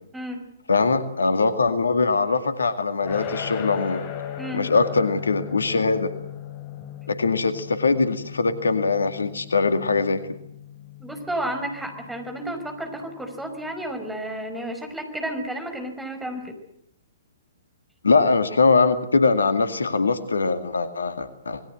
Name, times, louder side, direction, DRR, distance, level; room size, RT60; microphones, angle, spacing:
voice 1, 0.7-4.0 4.5-6.1 7.1-10.2 18.0-21.6, left 4 dB, 70° left, 10 dB, 2.1 m, -22 dB
sound 1, 3.0-14.0, left 9 dB, 35° left, 4.3 m, -38 dB
voice 2, 11.0-16.6, right 1 dB, 5° right, 5 dB, 5.2 m, -32 dB
27.0 x 20.5 x 7.9 m, 0.71 s
figure-of-eight pair, 115°, 0 cm